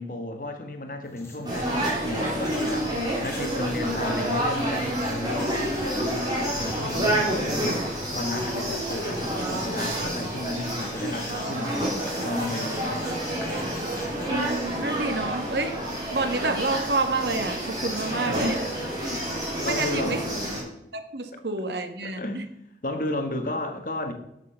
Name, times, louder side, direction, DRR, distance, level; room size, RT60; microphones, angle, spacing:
voice 1, 0.0-13.1 17.8-18.6 19.1-19.3 19.6-20.7 21.3-21.4 22.0-22.5 22.8-24.1, left 1 dB, 50° left, 5 dB, 1.4 m, -33 dB
sound 1, 1.0-14.9, left 1 dB, 15° left, 2.1 m, -44 dB
sound 2, 1.4-20.6, right 1 dB, 25° right, 3.5 m, -29 dB
voice 2, 14.3-15.8 16.1-18.5 19.6-20.2 20.9-22.4, right 3 dB, 70° right, 8 dB, 1.3 m, -28 dB
12.0 x 6.6 x 5.6 m, 0.81 s
head